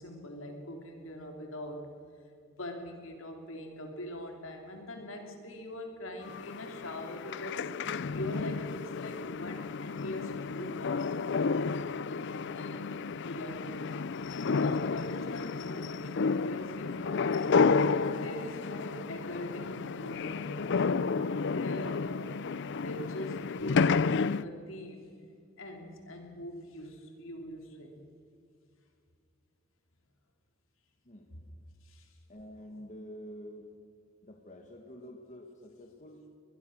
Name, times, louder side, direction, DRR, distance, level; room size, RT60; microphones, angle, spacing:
voice 1, 0.0-1.9 2.5-7.6 8.1-13.9 14.3-17.5 18.0-20.9 21.4-22.3 22.8-25.1 25.6-28.0 31.8-32.2, left 1 dB, 75° left, 3 dB, 3.3 m, -43 dB
sound 1, 6.3-24.4, left 4 dB, 60° left, 0.5 m, -31 dB
voice 2, 32.3-33.7 34.2-36.3, equal, 35° left, 3 dB, 1.9 m, -48 dB
22.5 x 21.0 x 6.4 m, 2.5 s
head